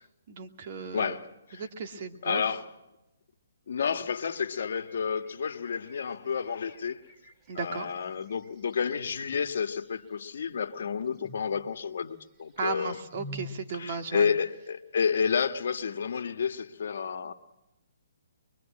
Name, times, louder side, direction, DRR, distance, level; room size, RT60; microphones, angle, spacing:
voice 1, 0.3-1.2 1.6-2.4 7.5-7.9 12.6-14.3, right 5 dB, 45° right, 2.5 m, -35 dB
voice 2, 0.9-1.6 2.2-2.7 3.7-7.0 7.5-13.0 13.7-17.3, left 6 dB, 65° left, 1.5 m, -30 dB
sound 1, 4.3-14.2, left 2 dB, 20° right, 2.8 m, -51 dB
24.5 x 23.0 x 7.5 m
hypercardioid pair, 145°, 0 cm